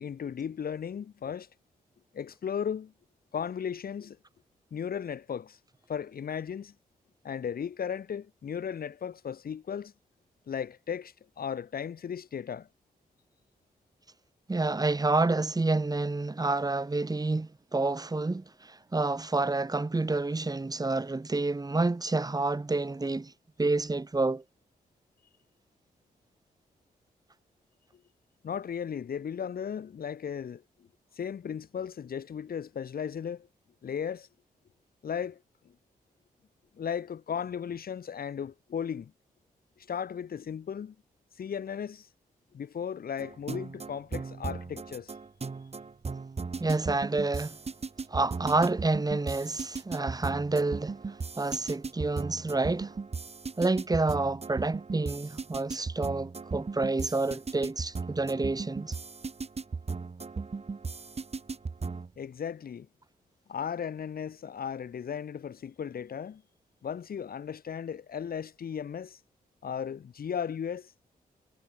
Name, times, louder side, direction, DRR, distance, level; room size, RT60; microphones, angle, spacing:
voice 1, 0.0-1.5 2.1-2.9 3.3-4.2 4.7-5.6 5.9-6.7 7.2-9.9 10.5-12.7 28.4-30.9 31.2-33.5 33.8-34.3 35.0-35.7 36.8-39.1 39.8-40.9 41.4-42.1 42.5-45.1 62.2-62.9 63.5-66.4 66.8-69.2 69.6-70.9, left 7 dB, 70° left, 2.7 m, -36 dB
voice 2, 14.5-23.3 23.6-24.4 46.6-47.6 48.1-53.0 53.6-59.0, right 3 dB, 25° right, 3.4 m, -29 dB
sound 1, 43.2-62.1, right 4 dB, 40° right, 4.6 m, -37 dB
cardioid pair, 85°, 16 cm